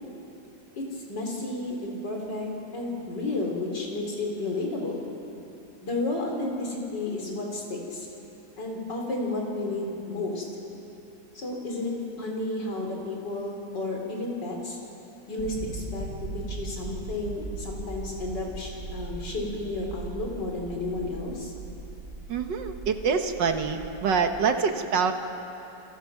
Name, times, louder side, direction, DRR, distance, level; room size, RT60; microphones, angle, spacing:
voice 1, 0.8-5.1 5.8-8.1 8.6-10.4 11.3-14.8 15.3-16.1 16.3-21.5, left 2 dB, 75° left, 0 dB, 4.6 m, -32 dB
sound 1, 15.4-24.4, right 3 dB, 70° right, 4.8 m, -39 dB
voice 2, 22.3-25.1, right 6 dB, 90° right, 6 dB, 1.9 m, -25 dB
27.5 x 24.0 x 6.0 m, 3.0 s
omnidirectional pair, 1.9 m